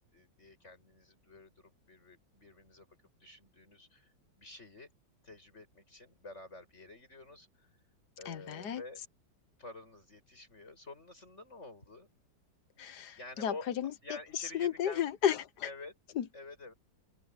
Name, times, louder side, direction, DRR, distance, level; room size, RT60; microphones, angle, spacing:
voice 1, 0.1-2.9 3.2-4.9 5.2-7.7 8.2-9.0 9.6-12.1 13.2-13.7 14.0-15.0 15.6-15.9 16.3-16.7, left 2 dB, 40° left, 8.5 m, -49 dB
voice 2, 8.2-8.8 12.8-13.9 14.3-15.7 16.2-16.3, left 9 dB, 65° left, 1.6 m, -33 dB
open air
omnidirectional pair, 2.0 m